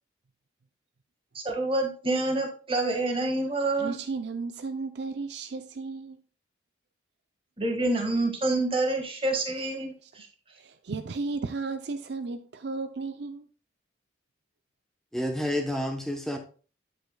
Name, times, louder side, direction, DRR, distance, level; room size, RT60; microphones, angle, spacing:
voice 1, 1.3-4.0 7.6-10.3, right 2 dB, 30° right, 1.6 m, -27 dB
voice 2, 3.8-6.2 9.8-10.1 10.6-13.5, right 4 dB, 65° right, 0.5 m, -34 dB
voice 3, 15.1-16.4, left 1 dB, ahead, 0.8 m, -29 dB
9.1 x 7.8 x 2.2 m
head